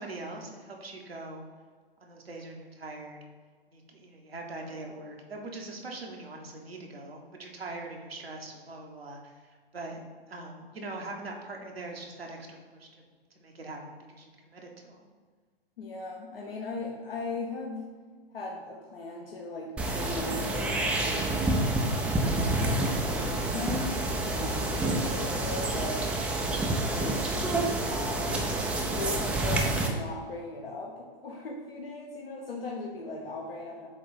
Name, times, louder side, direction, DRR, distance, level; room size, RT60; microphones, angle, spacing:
voice 1, 0.0-1.4 2.0-3.2 3.7-9.3 9.7-10.0 10.3-12.9 13.3-15.1, right 2 dB, 85° right, 0 dB, 1.3 m, -42 dB
voice 2, 15.8-17.9 18.3-21.4 22.1-26.1 26.8-27.3 27.8-28.5 28.9-33.9, left 3 dB, 75° left, 0 dB, 1.0 m, -38 dB
sound 1, 19.8-29.9, right 2 dB, 5° right, 0.3 m, -28 dB
7.8 x 2.6 x 4.9 m, 1.5 s
figure-of-eight pair, 110°, 29 cm